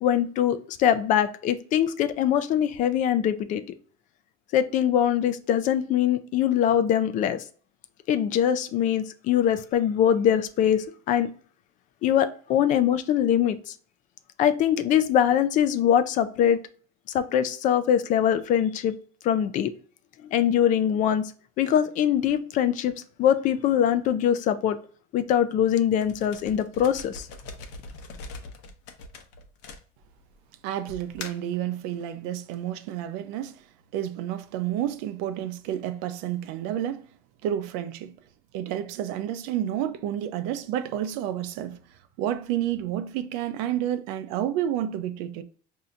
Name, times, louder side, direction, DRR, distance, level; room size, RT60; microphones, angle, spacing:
voice 1, 0.0-3.6 4.5-7.4 8.1-11.3 12.0-13.7 14.4-16.6 17.1-18.9 19.2-19.7 20.3-21.3 21.6-22.9 23.2-24.8 25.1-27.3, left 9 dB, 45° left, 0.4 m, -23 dB
sound 1, 26.0-30.3 30.9-31.5, left 3 dB, 65° left, 0.8 m, -42 dB
voice 2, 30.6-33.6 33.9-37.1 37.4-38.1 38.5-41.8 42.2-45.4, right 11 dB, 70° right, 0.5 m, -30 dB
5.5 x 2.7 x 2.5 m
cardioid pair, 145°, 19 cm